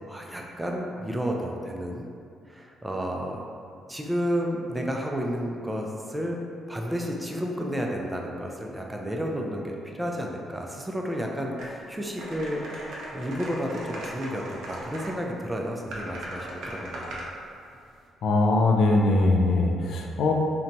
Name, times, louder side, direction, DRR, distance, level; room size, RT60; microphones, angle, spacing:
voice 1, 0.1-2.1 2.5-3.4 3.9-6.4 6.7-12.7 13.1-17.3, equal, 10° right, 0 dB, 0.3 m, -31 dB
sound 1, 11.6-11.7 12.2-15.1 15.9-17.3, right 1 dB, 80° right, 0.5 m, -38 dB
voice 2, 18.2-20.3, left 2 dB, 70° left, 1 dB, 0.3 m, -21 dB
2.8 x 2.2 x 2.6 m, 2.4 s
cardioid pair, 90°, 0 cm